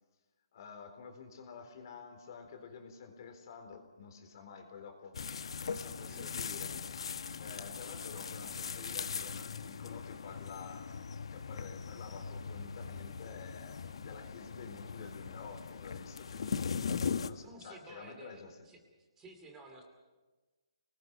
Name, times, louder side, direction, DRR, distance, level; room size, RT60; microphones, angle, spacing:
voice 1, 0.5-5.1 5.6-6.8 7.3-16.8 17.2-18.6, left 5 dB, 45° left, 6 dB, 3.9 m, -50 dB
sound 1, 5.1-17.3, left 6 dB, 70° left, 1.0 m, -40 dB
voice 2, 6.0-6.3 17.4-18.8 19.2-19.8, right 2 dB, 15° right, 3 dB, 2.6 m, -53 dB
28.0 x 20.0 x 5.3 m, 1.2 s
hypercardioid pair, 155°, 3 cm